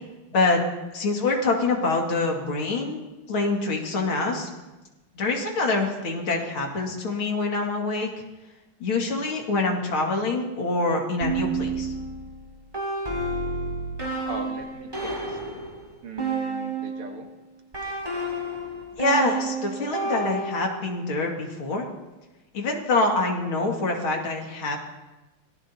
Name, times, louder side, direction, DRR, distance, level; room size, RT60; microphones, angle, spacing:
voice 1, 0.3-0.6 0.9-3.0 3.3-4.5 5.2-8.1 8.8-11.9 19.0-21.9 22.5-24.8, left 3 dB, 70° left, 0 dB, 3.0 m, -25 dB
sound 1, 11.2-17.1 17.7-20.9, right 3 dB, 20° right, 3.8 m, -30 dB
voice 2, 14.3-15.4 16.0-17.3, right 5 dB, 80° right, 3 dB, 2.4 m, -39 dB
25.0 x 18.0 x 2.8 m, 1.1 s
omnidirectional pair, 2.4 m